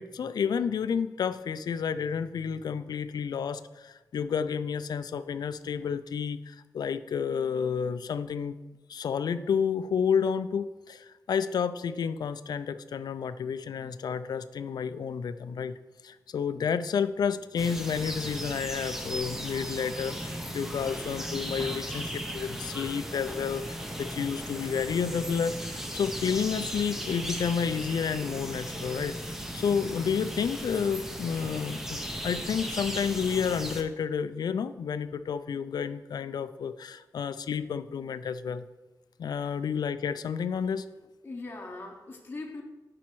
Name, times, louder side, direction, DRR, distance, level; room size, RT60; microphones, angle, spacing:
voice 1, 0.0-8.6 8.9-15.8 16.0-29.2 29.5-38.7 39.2-40.8, left 7 dB, 75° left, 13 dB, 0.3 m, -30 dB
sound 1, 17.6-33.8, equal, 5° right, 0.7 m, -36 dB
voice 2, 39.3-39.6 41.2-42.6, left 3 dB, 30° left, 0 dB, 0.8 m, -41 dB
10.5 x 4.2 x 4.6 m, 1.2 s
wide cardioid pair, 180°, 7 cm